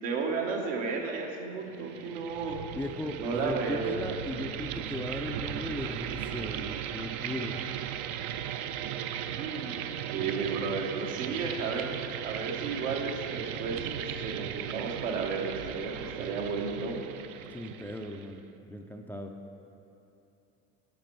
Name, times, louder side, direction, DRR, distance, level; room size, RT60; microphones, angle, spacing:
voice 1, 0.0-2.6 3.2-4.0 9.4-9.8 10.1-11.9 12.2-17.0, right 4 dB, 80° right, 1 dB, 1.2 m, -33 dB
sound 1, 1.7-18.4, right 10 dB, 60° right, 0.5 m, -37 dB
voice 2, 2.7-7.5 17.5-18.4 18.7-19.3, left 1 dB, 5° left, 3 dB, 0.3 m, -37 dB
10.5 x 5.2 x 4.5 m, 2.8 s
hypercardioid pair, 85°, 39 cm